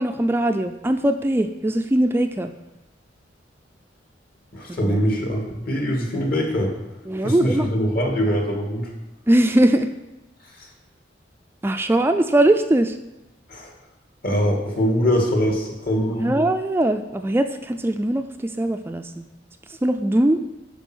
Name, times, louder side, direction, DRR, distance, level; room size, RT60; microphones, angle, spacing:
voice 1, 0.0-2.5 4.7-5.0 7.1-7.7 9.3-9.9 11.6-13.0 16.1-19.2 19.7-20.4, right 1 dB, 15° right, 6 dB, 0.3 m, -21 dB
voice 2, 4.5-6.7 7.2-8.9 10.6-10.7 13.5-13.7 14.2-16.3, equal, 55° left, 0 dB, 2.2 m, -23 dB
11.0 x 4.6 x 6.2 m, 0.98 s
head